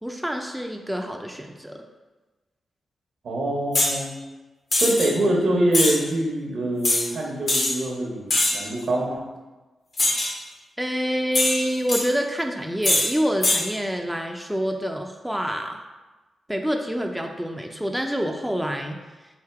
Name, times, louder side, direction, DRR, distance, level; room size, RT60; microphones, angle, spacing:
voice 1, 0.0-1.8 10.8-15.8 16.5-19.0, equal, 5° right, 3 dB, 0.4 m, -27 dB
voice 2, 3.2-4.1 4.8-9.3, right 1 dB, 80° right, -1 dB, 1.0 m, -24 dB
sound 1, 3.7-4.0 4.7-5.1 5.7-6.0 6.8-7.0 7.5-7.7 8.3-8.7 10.0-10.3 11.3-12.0 12.8-13.1 13.4-13.6, left 2 dB, 55° left, 1.1 m, -21 dB
3.5 x 2.7 x 4.6 m, 1.2 s
cardioid pair, 60°, 0 cm